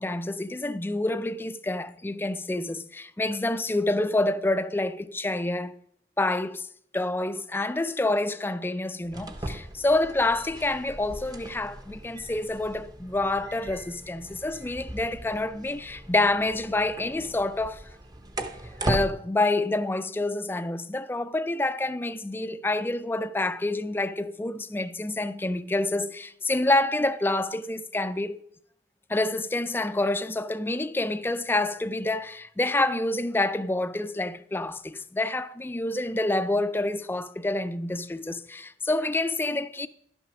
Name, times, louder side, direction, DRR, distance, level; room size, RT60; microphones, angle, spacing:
voice 1, 0.0-5.8 6.2-6.7 6.9-17.8 18.9-28.4 29.1-39.9, left 2 dB, 10° left, 0.4 m, -27 dB
sound 1, 9.0-19.1, right 1 dB, 25° right, 0.7 m, -38 dB
11.0 x 6.2 x 5.9 m
head